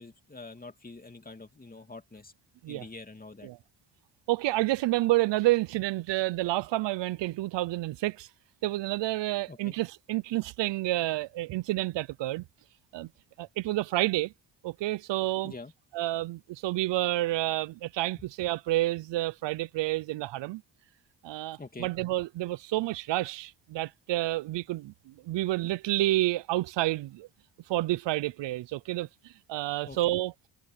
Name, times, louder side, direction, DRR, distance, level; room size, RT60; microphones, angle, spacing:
voice 1, 0.0-2.3 2.7-3.5 9.5-9.7 15.4-15.7 21.6-21.9 29.8-30.1, left 3 dB, 20° left, 2.9 m, -45 dB
voice 2, 4.3-8.3 8.6-12.4 12.9-13.1 13.4-14.3 14.6-15.5 15.9-20.6 21.2-27.3 27.7-30.3, right 17 dB, 75° right, 0.7 m, -29 dB
supercardioid pair, 60°, 44 cm